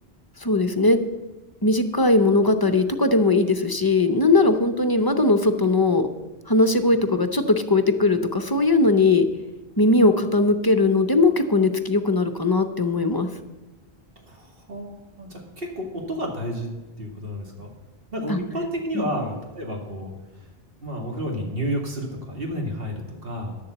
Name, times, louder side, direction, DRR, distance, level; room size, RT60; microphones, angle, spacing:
voice 1, 0.4-1.0 1.6-6.1 6.5-9.3 9.8-13.3 18.3-18.4 18.9-19.1, left 2 dB, 25° left, 9 dB, 0.6 m, -19 dB
voice 2, 14.3-16.7 17.0-17.7 18.1-20.1 20.8-23.6, equal, 65° right, 1 dB, 2.3 m, -31 dB
11.5 x 7.0 x 7.9 m, 1.1 s
omnidirectional pair, 1.1 m